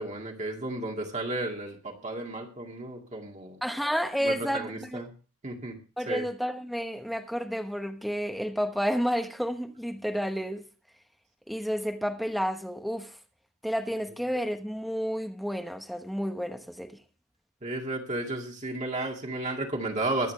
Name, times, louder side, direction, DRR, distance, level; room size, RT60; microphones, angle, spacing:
voice 1, 0.0-3.6 4.2-5.1 5.4-5.7 6.1-6.2 17.6-20.3, right 2 dB, 30° right, 2.2 m, -33 dB
voice 2, 3.6-5.0 6.0-10.6 11.5-13.2 13.6-16.9, equal, ahead, 1.1 m, -31 dB
22.5 x 8.5 x 3.3 m
head